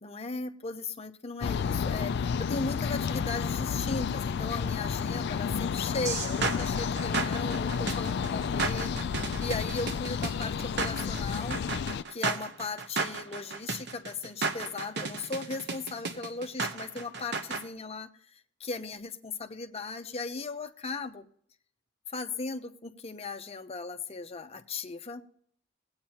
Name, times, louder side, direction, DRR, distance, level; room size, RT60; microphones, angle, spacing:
voice 1, 0.0-8.9 9.4-11.6 12.1-21.3 22.1-25.2, left 3 dB, 30° left, 7 dB, 0.7 m, -37 dB
sound 1, 1.4-12.0, left 6 dB, 60° left, 0.3 m, -31 dB
sound 2, 6.1-17.6, right 4 dB, 60° right, 0.9 m, -33 dB
20.5 x 8.7 x 2.9 m, 0.65 s
head